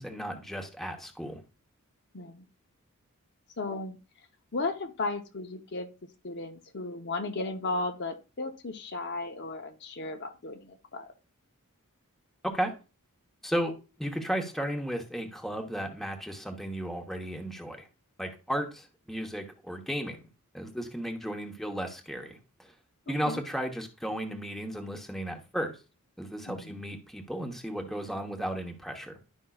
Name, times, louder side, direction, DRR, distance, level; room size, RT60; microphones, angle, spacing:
voice 1, 0.0-1.4 12.4-12.7 13.4-13.7 14.0-17.9 18.2-20.2 20.5-22.7 23.1-25.8 26.2-29.2, equal, ahead, 1.0 m, -34 dB
voice 2, 2.1-2.4 3.6-4.0 4.5-5.9 6.2-11.1 23.3-23.4 26.5-26.8, left 3 dB, 50° left, 0.8 m, -35 dB
11.0 x 5.4 x 2.3 m
head